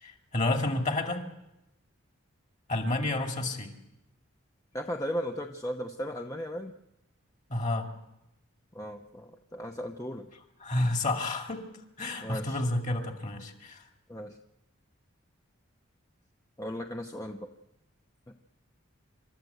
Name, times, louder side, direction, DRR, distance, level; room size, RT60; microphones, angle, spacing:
voice 1, 0.0-1.2 2.7-3.7 7.5-7.9 10.6-11.6 12.0-13.8, left 2 dB, 35° left, 4 dB, 2.3 m, -30 dB
voice 2, 4.7-6.7 8.7-10.3 12.2-12.6 14.1-14.4 16.6-17.5 18.3-18.4, equal, 15° left, 3 dB, 0.8 m, -36 dB
28.0 x 13.5 x 8.0 m, 0.91 s
head